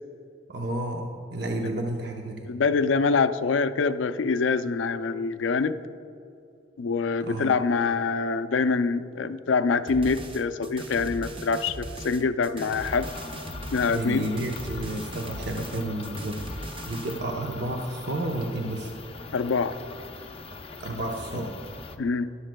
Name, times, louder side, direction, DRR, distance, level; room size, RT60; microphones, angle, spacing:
voice 1, 0.5-2.5 7.2-7.5 13.9-18.9 20.8-21.5, right 1 dB, 60° right, 0 dB, 0.8 m, -31 dB
voice 2, 2.5-5.8 6.8-13.1 13.7-14.3 19.3-19.8 22.0-22.3, left 4 dB, 85° left, 12 dB, 0.4 m, -25 dB
sound 1, 9.9-17.2, right 1 dB, 30° right, 0.6 m, -39 dB
sound 2, 12.8-22.0, left 3 dB, 30° left, 0.5 m, -41 dB
13.5 x 11.0 x 2.2 m, 2.7 s
head